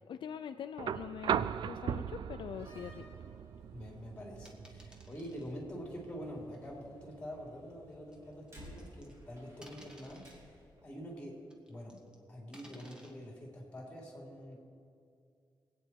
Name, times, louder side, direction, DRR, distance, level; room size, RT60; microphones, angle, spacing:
voice 1, 0.1-3.0, left 8 dB, 80° left, 8 dB, 0.5 m, -43 dB
sound 1, 0.8-8.8 10.2-10.3, right 8 dB, 70° right, 0.4 m, -40 dB
Slam, 2.4-10.8, equal, 35° right, 3.3 m, -58 dB
voice 2, 3.7-10.5 10.8-11.4 11.7-12.0 12.3-14.6, equal, 15° left, -2 dB, 3.8 m, -46 dB
sound 2, 4.4-5.5 6.5-6.7 8.1-9.2 9.6-10.5 11.5-12.2 12.5-13.1, equal, 10° right, 1.6 m, -57 dB
24.5 x 9.0 x 4.6 m, 2.4 s
wide cardioid pair, 150°, 8 cm